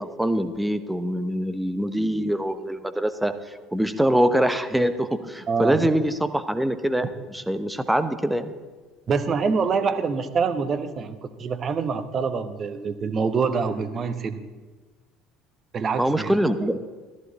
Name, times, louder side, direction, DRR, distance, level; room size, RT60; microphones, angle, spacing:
voice 1, 0.0-8.5 16.0-16.8, right 1 dB, 5° right, 10 dB, 0.9 m, -24 dB
voice 2, 5.5-5.9 9.1-14.4 15.7-16.5, right 5 dB, 35° right, 10 dB, 1.0 m, -25 dB
14.0 x 13.5 x 4.2 m, 1.3 s
figure-of-eight pair, 60°, 0 cm